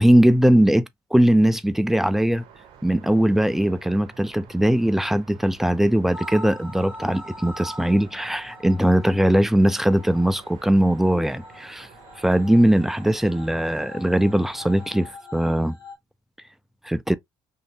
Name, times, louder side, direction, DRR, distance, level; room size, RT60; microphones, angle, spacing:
voice 1, 0.0-2.4 2.8-11.9 12.2-15.8 16.8-17.2, right 1 dB, 5° right, 0.4 m, -20 dB
sound 1, 2.4-15.2, right 7 dB, 55° right, 0.9 m, -50 dB
sound 2, 6.1-15.9, equal, 90° left, 0.8 m, -42 dB
3.1 x 2.6 x 2.8 m
figure-of-eight pair, 50°, 11 cm